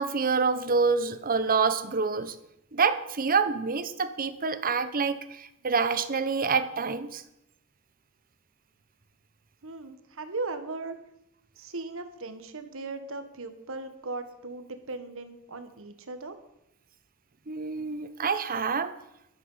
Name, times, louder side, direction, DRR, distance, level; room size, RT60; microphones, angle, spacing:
voice 1, 0.0-2.4 2.7-7.2 17.5-18.9, right 5 dB, 40° right, 12 dB, 0.9 m, -27 dB
voice 2, 9.6-10.9 11.6-16.4, right 3 dB, 65° right, 8 dB, 1.5 m, -38 dB
12.0 x 11.0 x 5.6 m, 0.82 s
head